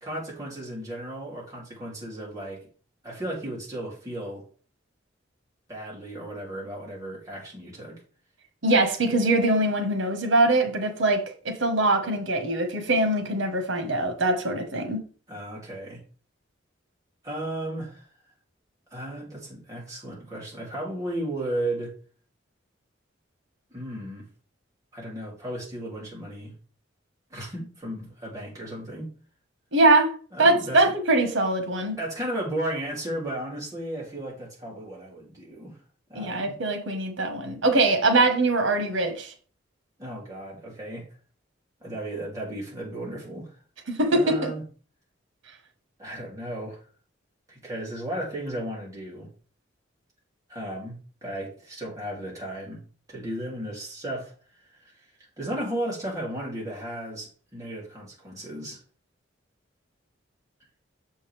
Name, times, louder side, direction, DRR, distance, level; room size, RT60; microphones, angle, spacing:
voice 1, 0.0-2.7 3.0-4.4 5.7-8.0 15.3-16.0 17.2-18.1 18.9-22.0 23.7-24.3 24.9-26.5 27.3-29.1 30.3-30.8 32.0-35.8 36.1-36.5 40.0-41.1 41.8-43.6 44.1-44.6 46.0-46.8 47.5-49.3 50.5-52.8 53.1-54.3 54.6-55.1 55.4-58.8, right 1 dB, 20° right, 3.1 m, -35 dB
voice 2, 8.6-15.0 29.7-32.0 36.1-39.3 43.9-44.5, right 2 dB, 85° right, 1.6 m, -23 dB
7.1 x 5.5 x 3.5 m
head